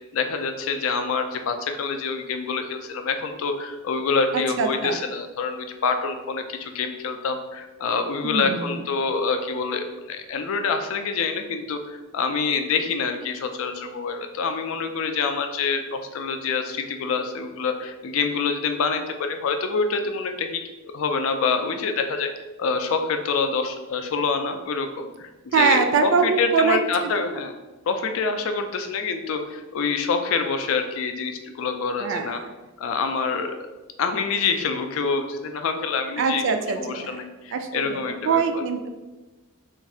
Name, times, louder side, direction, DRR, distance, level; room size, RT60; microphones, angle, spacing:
voice 1, 0.1-20.6 20.9-22.3 22.6-27.5 27.9-32.4 32.8-33.6 34.0-36.4 36.8-38.6, left 5 dB, 65° left, 6 dB, 0.4 m, -26 dB
voice 2, 4.3-5.0 8.2-8.9 25.5-26.8 27.2-27.4 32.0-32.5 36.2-37.2 37.5-38.9, right 5 dB, 60° right, 7 dB, 0.3 m, -23 dB
2.6 x 2.3 x 4.1 m, 1.1 s
head